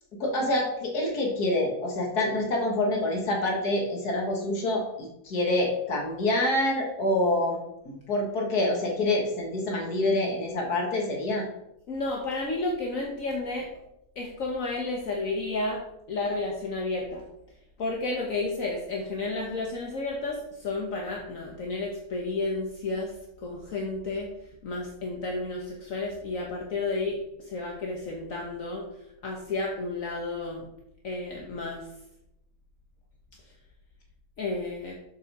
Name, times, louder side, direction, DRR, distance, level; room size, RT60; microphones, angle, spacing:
voice 1, 0.2-7.6 7.9-11.5, left 1 dB, 90° left, 0 dB, 2.1 m, -26 dB
voice 2, 11.9-13.7 14.2-15.8 16.1-17.2 17.8-23.1 23.4-24.3 24.6-28.8 29.2-30.6 31.0-31.9 34.4-34.9, left 2 dB, 60° left, 0 dB, 1.5 m, -31 dB
7.8 x 5.8 x 6.0 m, 0.84 s
omnidirectional pair, 1.6 m